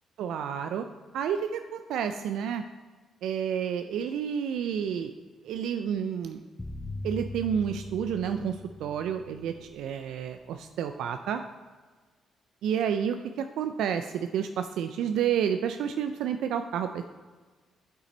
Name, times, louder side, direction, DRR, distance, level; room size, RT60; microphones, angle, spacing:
voice 1, 0.2-0.9 1.1-2.6 3.2-5.1 5.4-6.4 7.0-11.4 12.6-17.1, right 8 dB, 80° right, 7 dB, 0.3 m, -30 dB
sound 1, 6.6-10.7, left 2 dB, 15° left, 0.6 m, -40 dB
6.5 x 6.1 x 4.3 m, 1.4 s
cardioid pair, 90°, 0 cm